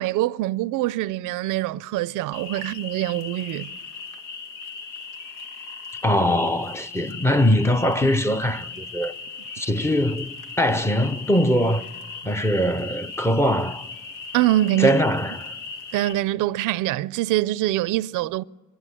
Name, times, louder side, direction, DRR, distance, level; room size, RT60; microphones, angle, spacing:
voice 1, 0.0-3.7 14.3-15.0 15.9-18.4, right 15 dB, 80° right, 0.5 m, -24 dB
sound 1, 2.3-16.1, left 4 dB, 85° left, 1.6 m, -38 dB
voice 2, 6.0-9.1 9.6-11.8 12.2-13.9 14.8-15.5, equal, 10° left, 0.6 m, -22 dB
24.0 x 12.0 x 9.7 m
cardioid pair, 95°, 31 cm